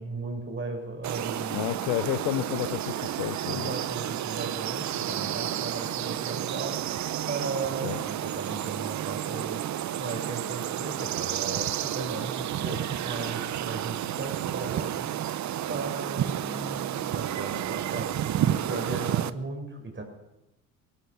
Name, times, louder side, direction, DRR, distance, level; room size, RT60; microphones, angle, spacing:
voice 1, 0.0-1.7 3.5-20.0, right 3 dB, 30° right, 4 dB, 5.6 m, -37 dB
sound 1, 1.0-19.3, right 11 dB, 45° right, 0.7 m, -31 dB
voice 2, 1.5-3.7 7.8-8.0, left 16 dB, 75° left, 16 dB, 0.8 m, -31 dB
19.0 x 12.5 x 5.9 m, 0.95 s
supercardioid pair, 70°, 39 cm